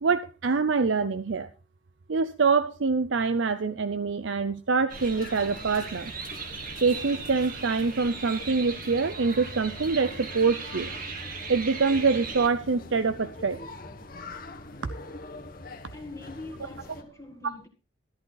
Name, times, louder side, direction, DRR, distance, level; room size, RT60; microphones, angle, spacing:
voice 1, 0.0-1.5 2.1-6.1 6.8-10.9 11.5-13.6, right 4 dB, 70° right, 0.6 m, -25 dB
sound 1, 4.9-17.0, left 2 dB, 45° left, 1.4 m, -43 dB
sound 2, 4.9-12.5, right 4 dB, 45° right, 2.0 m, -39 dB
voice 2, 15.9-17.7, left 2 dB, 15° left, 1.9 m, -43 dB
14.0 x 11.0 x 4.0 m
head